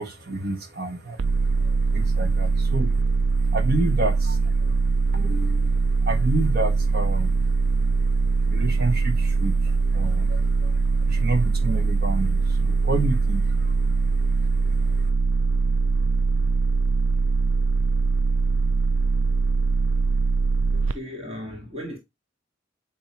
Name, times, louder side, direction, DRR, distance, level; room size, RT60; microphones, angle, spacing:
voice 1, 0.0-15.1, right 2 dB, 55° right, 1.6 m, -30 dB
sound 1, 1.2-20.9, right 4 dB, 85° right, 0.5 m, -22 dB
voice 2, 20.7-22.0, equal, 30° right, 2.2 m, -36 dB
9.3 x 3.4 x 4.4 m
head